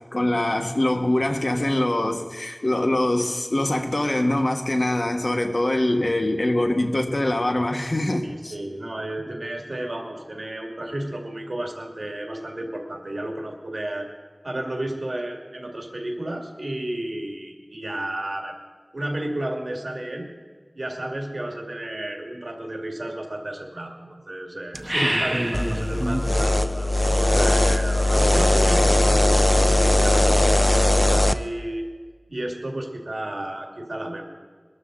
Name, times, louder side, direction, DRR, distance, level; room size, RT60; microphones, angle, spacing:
voice 1, 0.1-8.5, left 1 dB, 55° left, 1.3 m, -23 dB
voice 2, 8.2-14.1 14.4-18.5 18.9-20.3 20.8-31.8 32.3-34.2, right 1 dB, 70° right, 2.1 m, -32 dB
sound 1, 24.7-26.3, right 1 dB, 15° right, 0.8 m, -25 dB
sound 2, 25.5-31.3, left 1 dB, 25° left, 0.6 m, -19 dB
21.5 x 12.5 x 3.8 m
wide cardioid pair, 50°, 0 cm